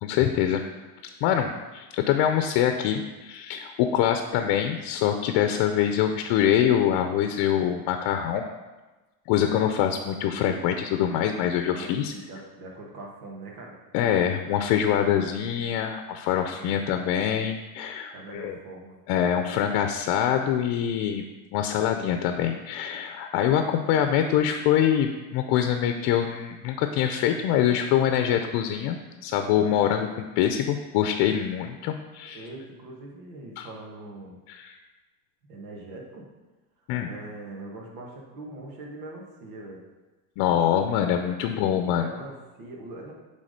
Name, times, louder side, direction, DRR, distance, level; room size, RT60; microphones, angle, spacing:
voice 1, 0.0-0.6 1.2-8.4 9.3-12.1 13.9-18.6 19.1-21.3 21.5-32.4 33.6-33.7 34.5-34.8 36.9-37.1 40.4-42.1, left 9 dB, 60° left, 6 dB, 0.7 m, -24 dB
voice 2, 11.7-13.8 16.5-17.0 18.1-19.0 32.2-34.4 35.5-36.3 37.1-39.8 41.5-43.1, right 2 dB, 85° right, -1 dB, 1.8 m, -42 dB
7.5 x 3.8 x 5.1 m, 1.2 s
supercardioid pair, 110°, 45 cm